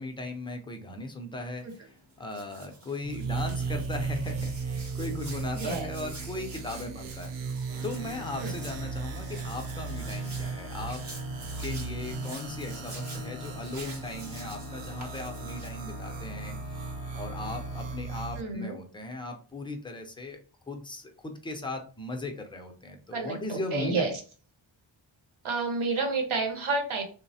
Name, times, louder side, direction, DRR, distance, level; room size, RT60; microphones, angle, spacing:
voice 1, 0.0-7.3 7.8-11.0 11.6-16.6 17.1-20.4 20.7-24.1, left 2 dB, 10° left, 4 dB, 0.5 m, -38 dB
Hands, 1.6-16.2, right 2 dB, 35° right, 0.9 m, -48 dB
sound 1, 3.0-18.4, right 5 dB, 65° right, 0.5 m, -36 dB
voice 2, 5.5-5.9 8.4-8.5 18.4-18.7 23.1-24.1 25.4-27.0, right 3 dB, 80° right, 2 dB, 1.0 m, -30 dB
Organ, 7.7-18.5, left 9 dB, 55° left, 0.6 m, -46 dB
3.1 x 2.0 x 2.7 m, 0.39 s
wide cardioid pair, 70°, 48 cm